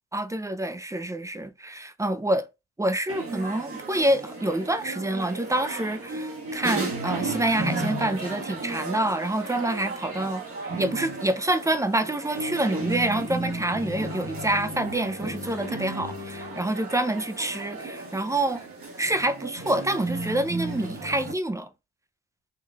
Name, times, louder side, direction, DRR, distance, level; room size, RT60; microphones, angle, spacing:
voice 1, 0.1-2.4 2.8-10.4 10.8-18.6 19.0-21.7, right 1 dB, 10° right, 0.5 m, -27 dB
sound 1, 3.1-21.3, right 2 dB, 50° right, 1.9 m, -34 dB
5.5 x 3.1 x 2.3 m
cardioid pair, 90°, 30 cm